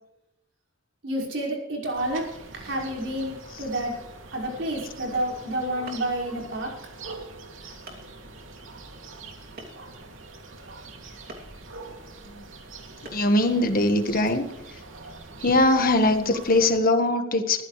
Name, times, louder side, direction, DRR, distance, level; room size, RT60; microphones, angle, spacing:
voice 1, 1.0-4.0 4.3-6.8, right 1 dB, 65° right, -2 dB, 5.4 m, -29 dB
sound 1, 1.9-16.8, right 3 dB, 90° right, 2.6 m, -44 dB
sound 2, 5.9-6.2 7.1-7.2 7.9-8.1 9.6-10.0 11.3-11.5 13.0-13.4, right 2 dB, 50° right, 2.9 m, -43 dB
voice 2, 13.1-14.4 15.4-17.6, left 2 dB, 45° left, 7 dB, 1.5 m, -21 dB
21.5 x 15.0 x 3.3 m, 0.88 s
head